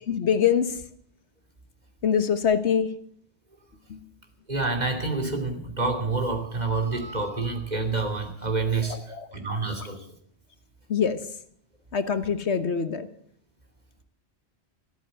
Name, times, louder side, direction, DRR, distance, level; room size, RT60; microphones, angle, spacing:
voice 1, 0.1-0.8 2.0-3.0 3.9-4.1 8.9-9.3 9.7-9.9 10.9-11.2 11.9-13.1, left 7 dB, 85° left, 10 dB, 1.5 m, -24 dB
voice 2, 4.5-9.0 9.3-10.0, right 3 dB, 40° right, 3 dB, 2.9 m, -28 dB
13.5 x 13.0 x 7.8 m, 0.63 s
omnidirectional pair, 1.1 m